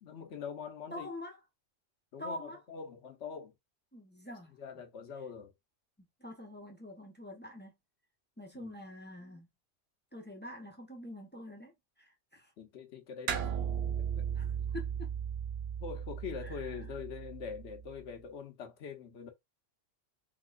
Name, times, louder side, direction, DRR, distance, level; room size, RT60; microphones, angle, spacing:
voice 1, 0.0-1.1 2.1-3.5 4.6-5.5 8.5-8.8 12.6-13.4 14.0-14.3 14.9-15.0 15.8-19.3, left 6 dB, 65° left, 1.1 m, -43 dB
voice 2, 0.9-1.4 2.2-2.6 3.9-4.5 6.0-7.7 8.4-9.5 10.1-12.5 14.4-14.5 14.7-15.1 16.4-16.6, left 1 dB, 10° left, 0.7 m, -45 dB
sound 1, 13.3-18.0, right 8 dB, 65° right, 0.8 m, -36 dB
3.7 x 2.9 x 2.4 m
omnidirectional pair, 1.2 m